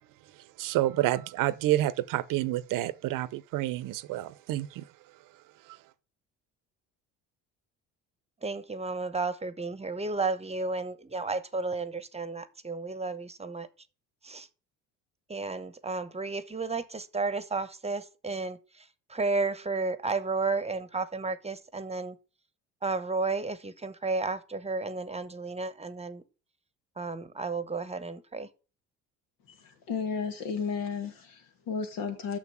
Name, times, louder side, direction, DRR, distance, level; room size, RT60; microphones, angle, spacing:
voice 1, 0.6-4.8, right 15 dB, 65° right, 0.8 m, -29 dB
voice 2, 8.4-13.7 14.2-14.5 15.3-18.6 19.1-22.1 22.8-26.2 27.0-28.5, right 3 dB, 20° right, 1.0 m, -32 dB
voice 3, 29.5-32.4, left 5 dB, 75° left, 2.3 m, -33 dB
6.6 x 6.1 x 7.6 m
supercardioid pair, 80°, 35 cm